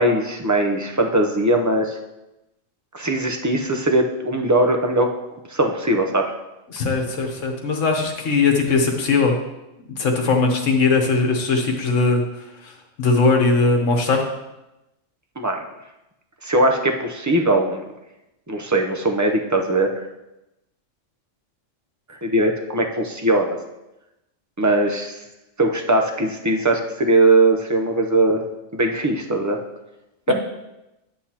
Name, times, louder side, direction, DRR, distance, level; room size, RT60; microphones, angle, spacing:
voice 1, 0.0-2.0 2.9-5.1 5.5-6.3 15.4-15.6 16.4-17.8 18.5-20.1 22.1-23.5 24.6-25.1 25.6-28.4 28.7-29.6 30.3-30.4, right 2 dB, 20° right, 3 dB, 0.5 m, -20 dB
voice 2, 6.7-9.3 10.0-12.2 12.6-14.2 30.3-30.4, left 3 dB, 75° left, 2 dB, 1.4 m, -19 dB
9.9 x 8.0 x 2.9 m, 0.95 s
omnidirectional pair, 1.3 m